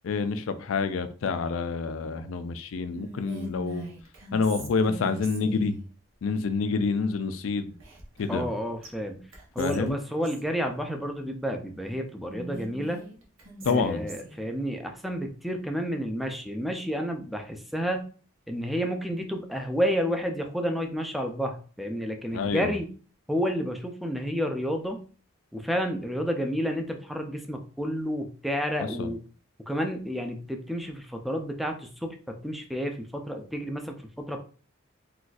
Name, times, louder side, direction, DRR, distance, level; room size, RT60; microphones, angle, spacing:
voice 1, 0.0-3.9 4.3-5.8 6.2-7.8 8.2-8.5 9.6-10.0 13.6-14.0 22.3-22.8 29.0-29.1, left 4 dB, 75° left, 0.4 m, -28 dB
Whispering, 2.9-5.8 7.8-8.5 8.8-8.9 9.3-10.5 12.3-14.4, right 2 dB, 75° right, 0.9 m, -41 dB
voice 2, 8.3-9.3 9.5-13.0 13.7-18.1 18.5-22.9 23.3-25.0 25.5-29.2 29.6-34.4, equal, ahead, 0.4 m, -30 dB
3.9 x 2.4 x 2.4 m
head